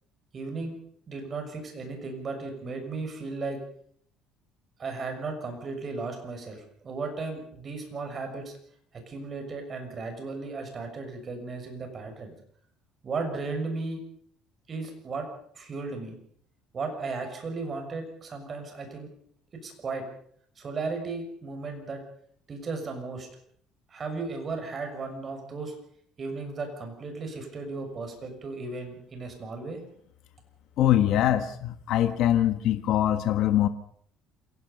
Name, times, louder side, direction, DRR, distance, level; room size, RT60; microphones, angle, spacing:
voice 1, 0.3-0.8 1.1-3.6 4.8-8.5 8.9-12.3 13.0-14.0 14.7-15.3 15.5-16.2 16.7-19.1 19.6-20.0 20.6-22.0 22.5-23.3 23.9-25.7 26.2-29.8, right 3 dB, 30° right, 5 dB, 6.3 m, -35 dB
voice 2, 30.8-33.7, left 12 dB, 60° left, 10 dB, 1.4 m, -23 dB
27.5 x 17.5 x 5.5 m, 0.63 s
cardioid pair, 140°, 0 cm